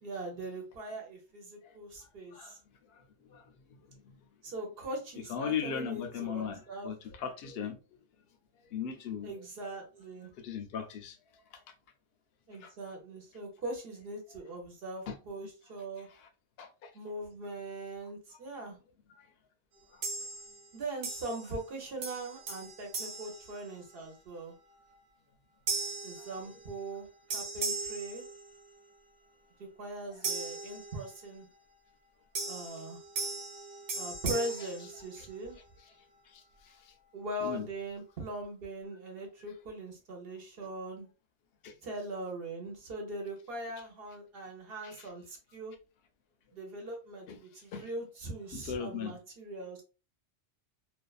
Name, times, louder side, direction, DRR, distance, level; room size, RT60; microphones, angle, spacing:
voice 1, 0.0-2.6 4.4-6.9 9.2-10.3 12.5-16.1 16.9-18.8 20.7-24.5 26.0-27.1 27.3-28.2 29.8-31.5 32.5-33.0 34.0-35.6 37.1-41.1 41.8-45.7 46.5-49.8, right 2 dB, 55° right, 0.9 m, -41 dB
voice 2, 3.3-4.2 5.3-7.8 8.7-9.3 10.4-11.6 12.6-12.7 15.1-15.2 16.0-16.3 16.6-16.9 19.2-19.3 19.9-20.1 26.2-26.6 30.1-30.2 35.2-35.3 36.3-36.9 37.4-37.7 41.6-41.7 44.8-45.1 47.3-47.4 47.7-47.9 48.5-49.2, left 7 dB, 65° left, 0.7 m, -39 dB
sound 1, 20.0-20.7 21.0-21.7 22.0-24.2 24.7-25.0 25.7-27.0 27.3-28.9 30.2-31.4 32.3-35.6, right 3 dB, 90° right, 1.1 m, -39 dB
2.6 x 2.3 x 2.3 m
omnidirectional pair, 1.2 m